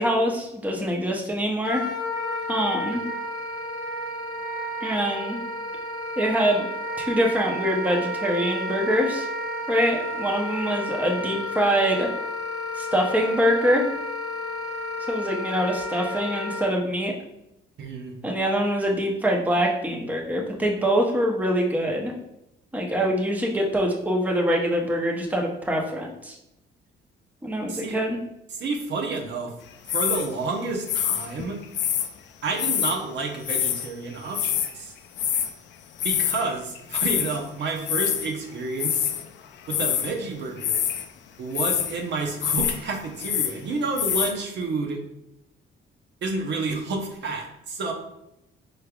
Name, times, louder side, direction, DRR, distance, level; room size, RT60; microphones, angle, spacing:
voice 1, 0.0-1.8 2.5-3.0 4.8-5.4 6.2-6.7 7.0-9.3 9.7-12.1 12.7-13.8 15.1-17.1 18.2-22.1 22.7-26.4 27.4-28.2, equal, 10° right, 0 dB, 0.7 m, -24 dB
Wind instrument woodwind instrument, 1.6-16.7, left 1 dB, 45° left, 0.8 m, -31 dB
voice 2, 17.8-18.1 27.7-28.0 28.5-29.5 29.9-31.6 32.4-34.9 36.0-39.1 39.7-40.8 41.4-45.0 46.2-47.9, right 3 dB, 65° right, 1 dB, 0.8 m, -30 dB
sound 1, 29.9-30.3 30.9-32.1 32.6-33.0 33.4-33.9 34.1-34.7 35.2-35.5 36.0-36.5 36.8-37.4 37.9-38.3 38.8-39.2 39.6-40.1 40.6-41.1 41.5-41.9 42.4-42.8 43.0-43.6 44.0-44.3, left 10 dB, 65° left, 0.4 m, -25 dB
4.7 x 3.3 x 2.3 m, 0.86 s
cardioid pair, 90°, 20 cm